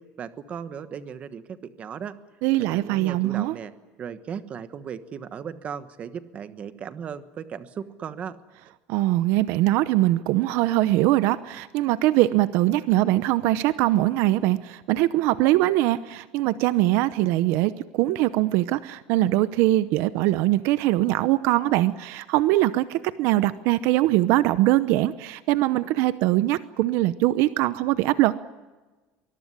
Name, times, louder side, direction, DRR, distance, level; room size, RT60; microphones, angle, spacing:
voice 1, 0.0-2.1 2.7-3.7 4.0-8.4, right 7 dB, 30° right, 12 dB, 1.3 m, -36 dB
voice 2, 2.4-3.6 8.9-28.3, right 16 dB, 65° right, 14 dB, 0.8 m, -22 dB
24.0 x 21.5 x 9.8 m, 1.2 s
cardioid pair, 170°, 5 cm